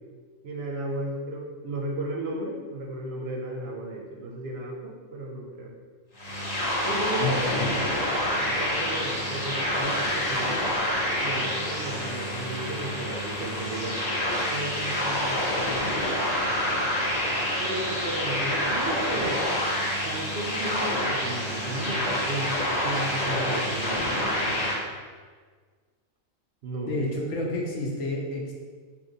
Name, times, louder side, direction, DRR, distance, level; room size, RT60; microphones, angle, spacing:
voice 1, 0.4-5.7 6.8-7.6 8.3-10.6 11.2-14.1 14.5-16.0 17.6-19.4 20.0-24.6 26.6-27.1, right 1 dB, 65° right, -1 dB, 0.7 m, -34 dB
sound 1, 6.2-24.8, left 1 dB, 40° left, 0.7 m, -27 dB
voice 2, 7.2-7.8 26.9-28.5, left 2 dB, 70° left, -1 dB, 1.0 m, -29 dB
5.1 x 2.8 x 2.7 m, 1.5 s
omnidirectional pair, 1.3 m